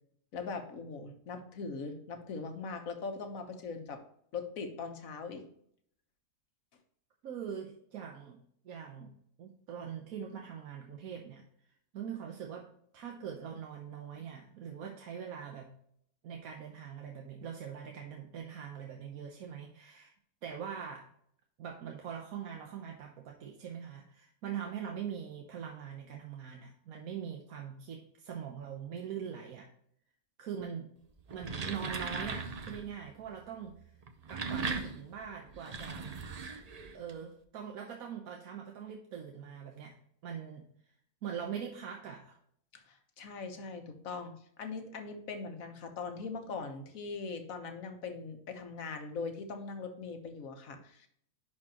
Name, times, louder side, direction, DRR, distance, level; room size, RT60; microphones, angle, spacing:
voice 1, 0.3-4.0 4.3-5.4 42.7-44.3 44.6-51.1, left 4 dB, 65° left, 5 dB, 1.5 m, -41 dB
voice 2, 7.2-8.4 8.6-11.5 11.9-12.7 12.9-15.7 16.2-20.1 20.4-21.1 21.6-29.7 30.4-30.9 31.3-33.9 34.3-36.1 36.9-39.9 40.2-40.7 41.2-42.4, right 8 dB, 70° right, 3 dB, 1.2 m, -42 dB
sound 1, 31.2-32.9 34.0-37.1, right 4 dB, 45° right, 0.5 m, -38 dB
10.5 x 4.4 x 2.9 m, 0.67 s
omnidirectional pair, 1.6 m